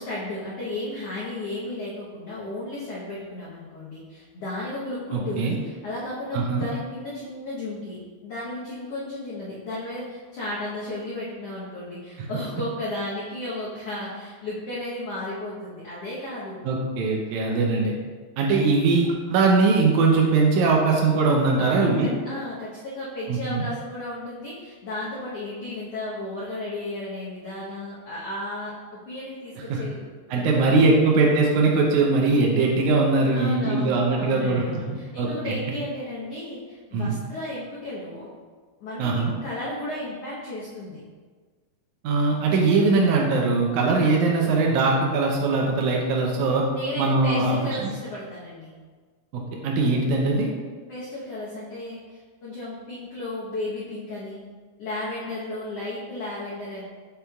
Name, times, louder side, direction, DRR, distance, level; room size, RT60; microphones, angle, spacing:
voice 1, 0.0-16.6 17.5-17.6 21.6-30.0 30.3-31.1 33.3-38.3 38.8-41.0 46.7-48.7 50.9-54.4 54.8-56.8, left 1 dB, 85° left, -8 dB, 1.3 m, -34 dB
voice 2, 16.6-17.9 18.4-22.1 23.3-23.6 29.7-29.8 30.3-35.5 36.9-37.2 39.0-39.3 42.0-46.6 47.0-47.5 47.8-47.9 49.3-50.5, right 3 dB, 90° right, -1 dB, 1.6 m, -21 dB
6.8 x 6.1 x 2.3 m, 1.5 s
omnidirectional pair, 4.3 m